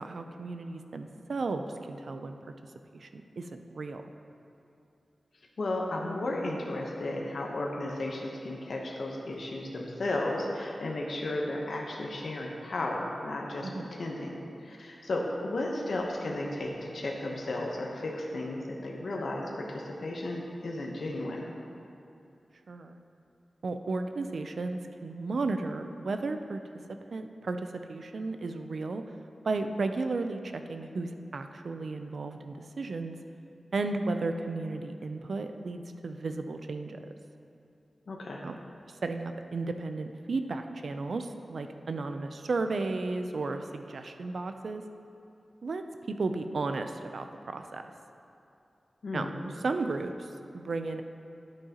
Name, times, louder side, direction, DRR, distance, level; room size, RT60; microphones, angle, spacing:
voice 1, 0.0-2.4 2.9-4.0 13.6-13.9 22.7-23.0 23.6-26.6 27.1-29.0 29.4-33.2 33.7-37.1 38.4-38.6 39.0-44.8 45.6-45.8 46.2-47.9 49.1-49.3 49.6-51.0, right 3 dB, 65° right, 7 dB, 0.5 m, -34 dB
voice 2, 5.6-13.7 14.0-21.4 38.1-38.4 49.0-49.4, left 2 dB, 70° left, -1 dB, 0.9 m, -34 dB
10.5 x 8.5 x 2.9 m, 2.7 s
wide cardioid pair, 130°, 0 cm